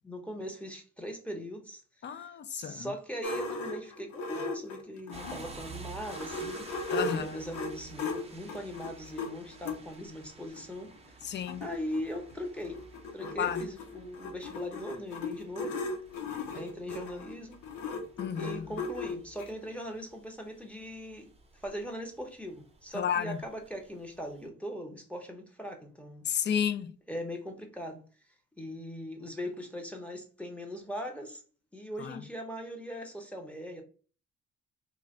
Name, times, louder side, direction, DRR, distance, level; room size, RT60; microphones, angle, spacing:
voice 1, 0.0-6.7 7.0-10.9 11.6-12.8 13.1-15.8 16.5-17.6 18.4-26.2 27.1-28.0 28.6-31.4 31.7-33.8, equal, 5° left, 0.9 m, -40 dB
voice 2, 2.0-2.9 6.9-7.4 11.2-11.6 13.4-13.7 18.2-18.7 22.9-23.4 26.3-26.9 32.0-32.2, left 8 dB, 35° left, 0.4 m, -32 dB
sound 1, 3.2-5.5 5.9-9.8 10.6-10.7 11.0-11.1 11.2-19.5, left 3 dB, 85° left, 0.8 m, -37 dB
sound 2, 5.1-24.5, right 4 dB, 20° right, 0.6 m, -52 dB
3.1 x 2.2 x 3.7 m
cardioid pair, 90°, 30 cm